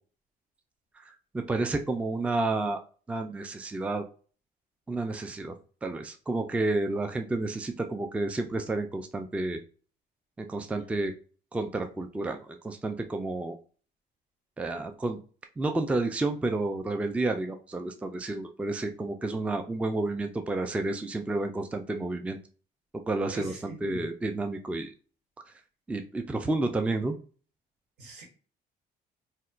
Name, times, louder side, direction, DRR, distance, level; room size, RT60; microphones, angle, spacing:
voice 1, 1.1-2.8 3.1-4.0 4.9-5.5 5.8-9.6 10.4-11.1 11.5-13.6 14.6-15.2 15.6-22.4 23.1-24.9 25.9-27.2, right 2 dB, 10° right, 6 dB, 0.3 m, -30 dB
voice 2, 23.3-24.1 28.0-28.2, right 1 dB, 80° right, 2 dB, 1.3 m, -41 dB
4.1 x 2.2 x 2.4 m, 0.39 s
cardioid pair, 110°, 17 cm